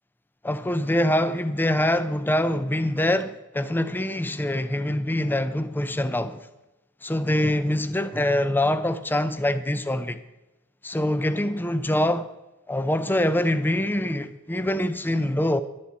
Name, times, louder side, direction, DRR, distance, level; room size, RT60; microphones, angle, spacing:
voice 1, 0.4-6.5 7.0-10.2 10.8-12.3 12.7-15.6, left 1 dB, 10° left, 0.5 m, -24 dB
11.5 x 11.0 x 4.2 m
head